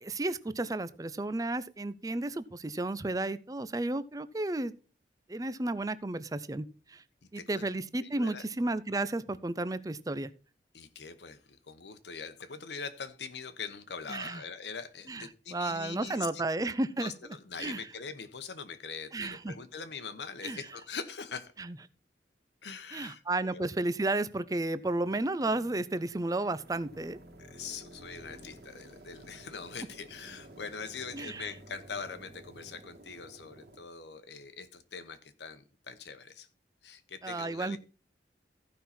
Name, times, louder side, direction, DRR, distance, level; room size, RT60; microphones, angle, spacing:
voice 1, 0.0-4.7 5.3-7.0 7.3-10.3 14.1-14.4 15.1-17.1 17.6-17.8 19.1-19.5 20.4-20.6 21.6-21.8 22.9-27.2 31.1-31.5 37.2-37.8, right 2 dB, 20° right, 15 dB, 0.5 m, -33 dB
voice 2, 8.0-8.4 10.7-16.7 17.0-21.5 22.6-23.2 23.5-23.7 27.4-36.5 36.8-37.8, left 5 dB, 80° left, 10 dB, 1.0 m, -43 dB
sound 1, 24.7-33.8, right 1 dB, 65° right, 1.9 m, -53 dB
15.0 x 5.6 x 4.2 m, 0.37 s
head